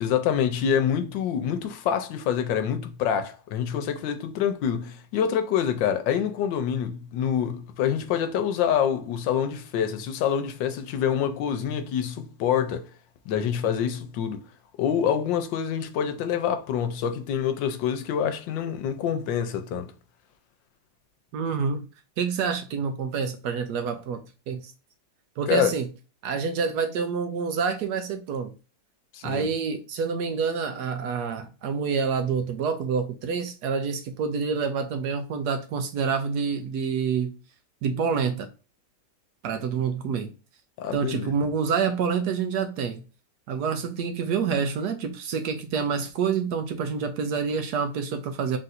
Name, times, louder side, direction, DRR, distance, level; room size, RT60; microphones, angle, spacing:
voice 1, 0.0-12.8 13.3-14.4 14.8-19.9 25.5-25.7 29.1-29.5 40.8-41.3, left 8 dB, 85° left, 1.3 m, -26 dB
voice 2, 21.3-21.9 22.2-24.2 24.5-24.7 25.4-25.9 26.2-28.5 29.2-37.3 37.8-38.5 39.4-40.3 40.9-43.0 43.5-48.6, right 6 dB, 70° right, 1.0 m, -27 dB
3.8 x 2.6 x 4.1 m
omnidirectional pair, 2.0 m